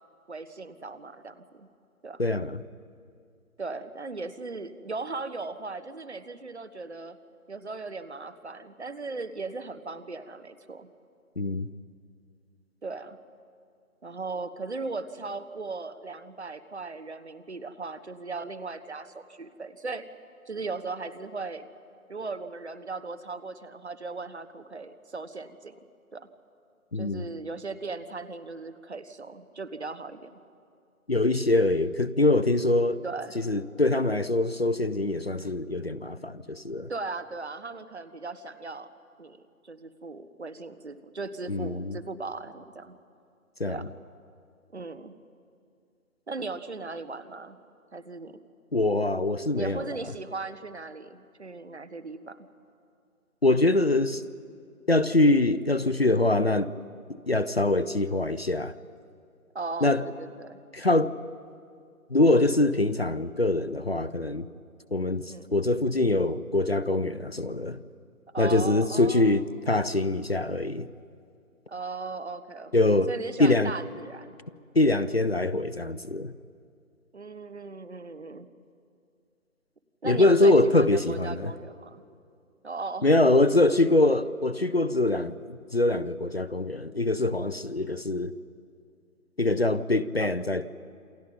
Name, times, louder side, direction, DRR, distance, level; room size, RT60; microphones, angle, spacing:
voice 1, 0.3-1.7 2.0-2.2 3.6-7.2 7.5-10.9 12.8-13.2 14.0-20.0 20.5-21.7 22.1-25.8 26.1-26.3 26.9-30.3 33.0-33.4 36.9-38.9 39.2-39.4 39.6-43.0 43.7-43.9 44.7-45.2 46.3-47.6 47.9-48.4 49.6-52.5 59.5-60.6 65.3-65.5 68.3-69.4 71.7-72.7 73.1-74.4 77.1-78.5 80.0-82.0 82.6-83.3 90.2-90.3, right 3 dB, 50° right, 1.2 m, -37 dB
voice 2, 2.2-2.6 11.4-11.7 26.9-27.2 31.1-33.0 33.5-36.9 41.5-42.0 43.6-43.8 48.7-49.9 53.4-54.2 54.9-56.7 57.3-58.7 59.8-60.0 60.7-61.1 62.1-64.5 64.9-67.8 68.4-70.9 72.7-73.1 73.4-73.7 74.7-76.3 80.0-81.5 83.0-88.3 89.4-90.7, left 2 dB, 45° left, 0.6 m, -24 dB
28.0 x 26.5 x 5.3 m
figure-of-eight pair, 160°, 44 cm